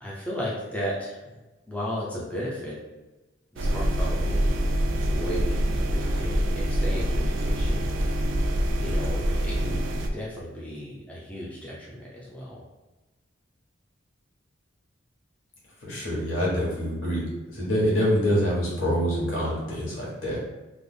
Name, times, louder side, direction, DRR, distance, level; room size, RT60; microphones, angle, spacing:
voice 1, 0.0-1.4 1.7-2.8 3.5-4.8 5.1-8.1 8.8-12.6, equal, 5° left, -6 dB, 0.5 m, -35 dB
sound 1, 3.6-10.1, equal, 65° right, 0.4 m, -25 dB
voice 2, 15.8-17.2 17.5-20.4, equal, 75° left, -5 dB, 1.4 m, -25 dB
3.4 x 2.0 x 3.7 m, 1.1 s
head